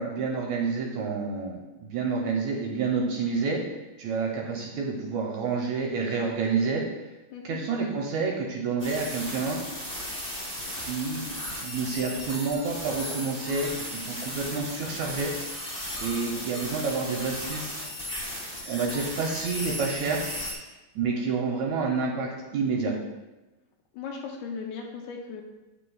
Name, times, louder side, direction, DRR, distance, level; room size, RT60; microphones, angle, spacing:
voice 1, 0.0-3.6 4.0-6.8 7.4-9.6 10.8-11.3 11.6-15.3 16.0-17.7 18.7-20.2 20.9-22.9, right 4 dB, 75° right, 0 dB, 1.8 m, -29 dB
sound 1, 8.8-20.5, left 1 dB, 10° left, 2.1 m, -36 dB
voice 2, 23.9-25.4, left 5 dB, 80° left, 1 dB, 1.9 m, -37 dB
8.7 x 7.5 x 2.3 m, 1.1 s
omnidirectional pair, 3.9 m